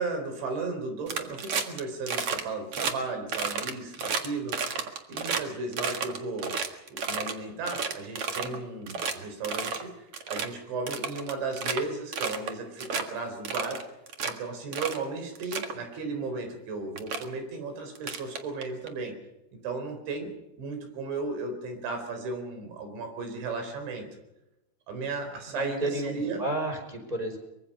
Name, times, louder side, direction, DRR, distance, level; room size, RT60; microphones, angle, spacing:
voice 1, 0.0-4.5 5.1-6.5 6.9-13.8 14.2-19.1 19.5-24.2 24.9-26.4, right 3 dB, 70° right, 6 dB, 6.4 m, -35 dB
sound 1, 1.1-1.8 2.1-2.4 2.7-2.9 3.3-5.4 5.7-7.3 7.7-8.6 8.9-9.1 9.4-9.8 10.1-10.5 10.9-11.8 12.1-12.5 12.8-13.0 13.4-14.3 14.7-15.0 15.3-15.7 16.5-16.6 17.0-17.2 17.9-18.9, right 5 dB, 85° right, 1.2 m, -31 dB
voice 2, 25.5-27.4, right 1 dB, 10° right, 3 dB, 5.1 m, -32 dB
23.5 x 23.0 x 5.5 m, 0.94 s
omnidirectional pair, 5.6 m